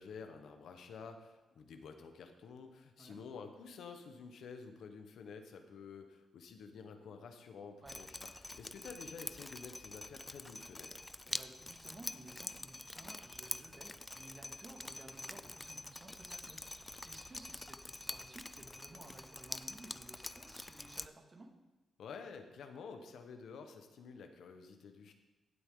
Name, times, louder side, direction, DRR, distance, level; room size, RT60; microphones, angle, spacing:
voice 1, 0.0-8.1 8.4-11.0 22.0-25.1, left 5 dB, 80° left, 6 dB, 1.2 m, -50 dB
Drip, 7.9-21.1, left 2 dB, 15° left, 0.4 m, -46 dB
voice 2, 11.3-21.6, right 2 dB, 35° right, 2 dB, 2.2 m, -56 dB
16.0 x 8.2 x 3.9 m, 1.1 s
cardioid pair, 65°, 0 cm